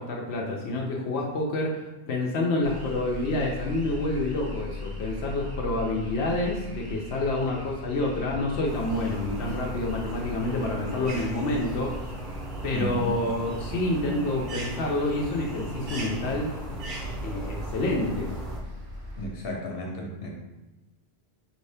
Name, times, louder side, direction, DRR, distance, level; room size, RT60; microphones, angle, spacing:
voice 1, 0.0-11.9 12.6-16.5 17.2-18.3, left 2 dB, 85° left, -2 dB, 0.9 m, -28 dB
sound 1, 2.6-19.3, left 1 dB, 30° right, 0.5 m, -39 dB
sound 2, 8.6-18.6, right 1 dB, 55° right, 0.8 m, -38 dB
voice 2, 12.7-13.1 19.2-20.3, equal, 65° left, -1 dB, 1.1 m, -33 dB
4.6 x 2.7 x 3.3 m, 1.0 s
omnidirectional pair, 1.1 m